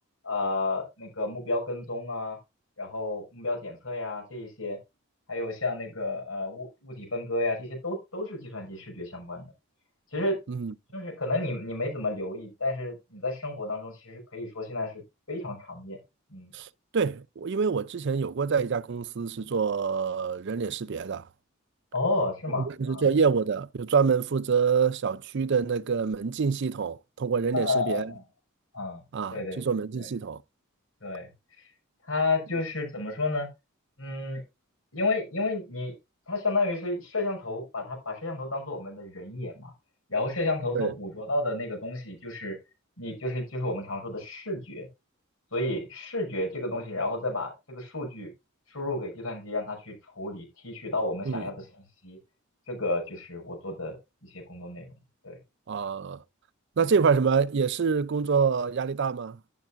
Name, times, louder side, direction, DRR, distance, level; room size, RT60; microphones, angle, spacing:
voice 1, 0.2-2.4 2.8-4.8 5.3-9.5 10.1-10.4 10.9-15.0 15.3-16.0 16.3-16.5 21.9-23.0 27.5-28.2 28.7-29.0 29.3-29.6 30.0-30.1 31.0-31.3 32.1-33.5 34.0-34.4 34.9-35.9 36.3-39.7 40.1-42.6 43.0-44.9 45.5-48.3 48.7-51.6 52.0-52.2 52.7-54.0 54.2-54.9 55.2-55.4 56.8-56.9, left 2 dB, 75° left, 6.4 m, -31 dB
voice 2, 16.5-21.2 22.6-28.1 29.1-30.4 40.7-40.9 51.3-51.4 55.7-56.2 56.8-59.4, right 5 dB, 55° right, 0.5 m, -26 dB
12.0 x 10.5 x 2.5 m
head